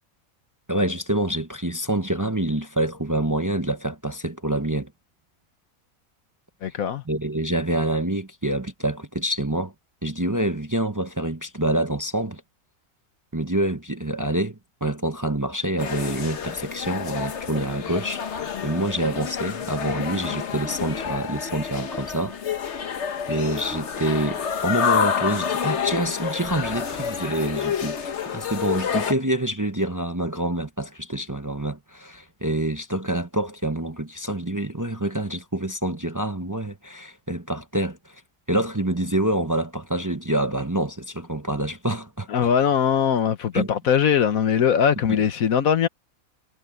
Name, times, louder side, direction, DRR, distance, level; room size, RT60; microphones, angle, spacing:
voice 1, 0.7-4.9 7.1-9.7 10.0-12.4 13.3-22.4 23.3-38.2 38.5-42.5 43.5-43.7 45.1-45.2, right 1 dB, 15° right, 0.7 m, -26 dB
voice 2, 6.6-7.0 42.3-45.9, left 8 dB, 85° left, 1.5 m, -21 dB
sound 1, 15.8-29.1, left 7 dB, 55° left, 1.3 m, -28 dB
omnidirectional pair, 1.4 m